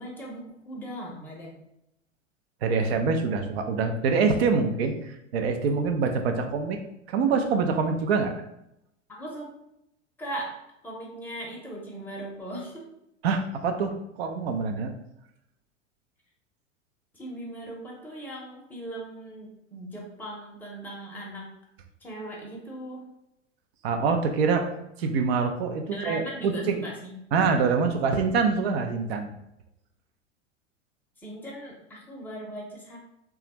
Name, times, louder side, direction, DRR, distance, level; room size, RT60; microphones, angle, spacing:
voice 1, 0.0-1.6 9.1-9.5 10.2-12.9 17.1-21.5 22.0-23.1 25.9-27.1 31.2-33.0, right 1 dB, 5° left, -3 dB, 0.7 m, -39 dB
voice 2, 2.6-6.8 7.1-8.3 13.2-14.9 23.8-24.7 25.0-26.8 27.3-29.3, right 5 dB, 55° right, 5 dB, 0.6 m, -25 dB
3.2 x 2.4 x 2.9 m, 0.82 s
figure-of-eight pair, 90°, 38 cm